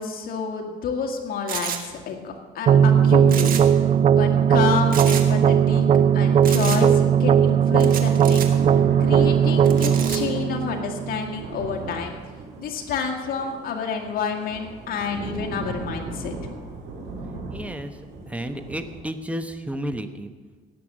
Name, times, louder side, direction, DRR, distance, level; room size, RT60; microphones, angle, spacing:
voice 1, 0.0-3.5 4.1-5.9 6.1-8.4 8.7-12.2 12.6-16.3, left 6 dB, 60° left, 2 dB, 1.9 m, -29 dB
sound 1, 1.5-1.8 3.3-4.2 4.9-5.3 6.4-6.8 7.8-8.5 9.6-10.2, right 8 dB, 55° right, 1.5 m, -30 dB
sound 2, 2.7-11.6, right 8 dB, 40° right, 0.4 m, -18 dB
Thunder / Rain, 7.7-19.0, right 2 dB, 80° right, 4.0 m, -37 dB
voice 2, 17.5-18.0 18.3-20.3, right 1 dB, 10° right, 8 dB, 1.1 m, -32 dB
17.5 x 6.8 x 7.5 m, 1.4 s
cardioid pair, 110°, 17 cm